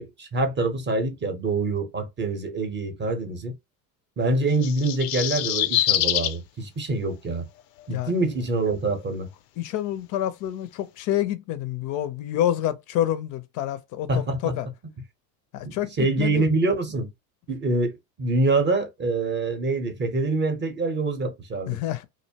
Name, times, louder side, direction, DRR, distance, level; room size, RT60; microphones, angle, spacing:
voice 1, 0.0-3.5 4.2-7.5 7.9-9.3 14.1-14.6 15.6-17.1 17.5-21.8, right 2 dB, 25° right, 0.7 m, -25 dB
sound 1, 4.5-6.4 7.8-7.9, left 13 dB, 90° left, 0.5 m, -24 dB
voice 2, 9.6-14.7 15.5-15.9 16.2-16.5 21.7-22.0, left 12 dB, 40° left, 0.5 m, -28 dB
2.6 x 2.0 x 2.7 m
supercardioid pair, 105°, 48 cm